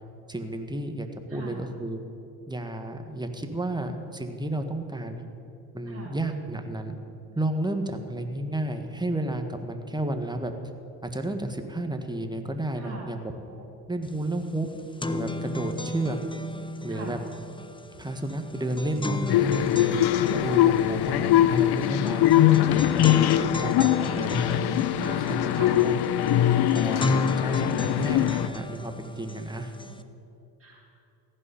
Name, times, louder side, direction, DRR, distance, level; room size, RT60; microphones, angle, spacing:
voice 1, 0.3-2.0 2.5-5.2 5.7-7.0 7.3-10.5 11.0-13.3 13.9-14.7 15.0-16.2 16.8-17.2 18.0-19.9 20.3-24.6 25.1-25.9 26.7-29.7, right 1 dB, 10° right, 6 dB, 1.5 m, -32 dB
voice 2, 1.3-1.6 5.9-6.1 12.7-13.1 13.5-13.7 15.7-15.9 16.9-17.2 19.9-20.0 24.5-25.8 26.2-26.5 29.9-30.0 30.6-30.9, right 4 dB, 30° right, -5 dB, 2.6 m, -41 dB
sound 1, 14.1-14.2 14.5-30.0, left 2 dB, 10° left, 0.8 m, -34 dB
sound 2, 19.3-28.5, left 12 dB, 55° left, 0.7 m, -22 dB
15.5 x 5.6 x 10.0 m, 2.7 s
hypercardioid pair, 60°, 47 cm